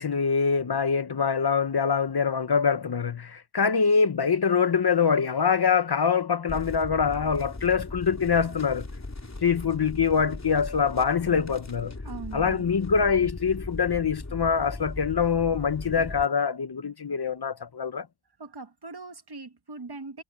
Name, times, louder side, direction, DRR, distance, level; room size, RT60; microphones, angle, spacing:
voice 1, 0.0-8.8 9.4-11.9 12.3-18.1, left 6 dB, 50° left, 0.9 m, -24 dB
sound 1, 6.5-16.3, left 2 dB, 30° left, 3.2 m, -38 dB
voice 2, 12.0-12.7 18.4-20.2, right 3 dB, 50° right, 1.8 m, -40 dB
wide cardioid pair, 70°, 50 cm